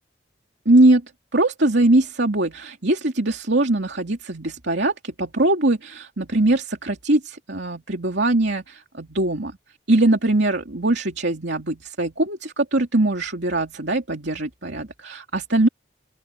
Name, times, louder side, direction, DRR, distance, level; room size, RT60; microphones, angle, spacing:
voice 1, 0.6-1.0 1.3-9.6 9.9-15.7, right 2 dB, 75° right, 2.7 m, -21 dB
open air
head